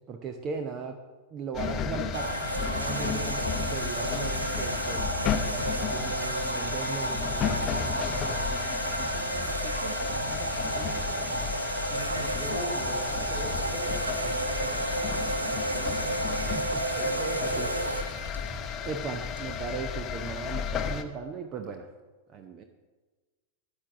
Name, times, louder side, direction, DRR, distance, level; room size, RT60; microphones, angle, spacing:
voice 1, 0.1-1.0 1.3-5.0 5.5-11.3 16.4-17.1 17.6-17.7 18.8-21.9 22.3-22.6, right 5 dB, 30° right, 6 dB, 0.8 m, -38 dB
sound 1, 1.5-21.0, left 7 dB, 30° left, 0.8 m, -33 dB
sound 2, 2.1-19.9, right 2 dB, 80° right, 0.5 m, -32 dB
voice 2, 11.8-16.3 16.9-18.0, right 1 dB, 60° right, -2 dB, 3.3 m, -39 dB
13.0 x 9.0 x 3.8 m, 1.3 s
figure-of-eight pair, 90°, 0 cm